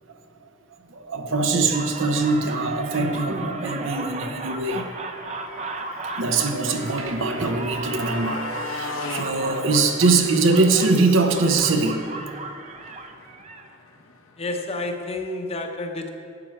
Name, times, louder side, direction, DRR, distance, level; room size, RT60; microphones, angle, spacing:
voice 1, 0.9-4.9 6.2-12.1, right 3 dB, 80° right, 0.8 m, -22 dB
sound 1, 1.7-13.7, right 3 dB, 35° right, 0.5 m, -35 dB
Motorcycle, 2.8-14.9, left 3 dB, 85° left, 1.0 m, -39 dB
voice 2, 14.4-16.1, left 2 dB, 30° left, 0.8 m, -30 dB
11.0 x 7.5 x 4.6 m
head